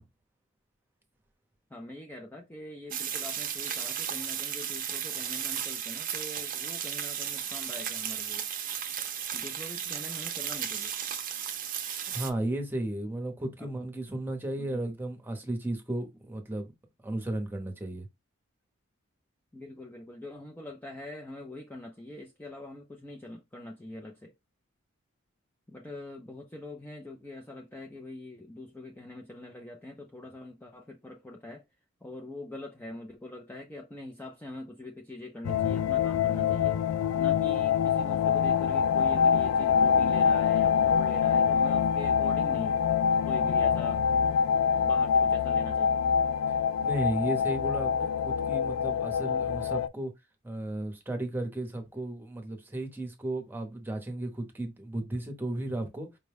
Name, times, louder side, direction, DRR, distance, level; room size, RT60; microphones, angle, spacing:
voice 1, 1.7-8.5 9.3-10.9 13.6-13.7 14.6-14.8 19.5-24.3 25.7-31.6 32.0-36.8 37.1-42.8 43.2-44.0 44.8-46.0, left 1 dB, 10° left, 0.4 m, -43 dB
sound 1, 2.9-12.3, right 9 dB, 40° right, 0.6 m, -34 dB
voice 2, 12.1-16.7 17.0-18.1 46.8-50.1 50.4-56.1, right 1 dB, 10° right, 0.8 m, -34 dB
sound 2, 35.4-49.9, left 7 dB, 85° left, 0.3 m, -25 dB
5.1 x 2.2 x 3.4 m
head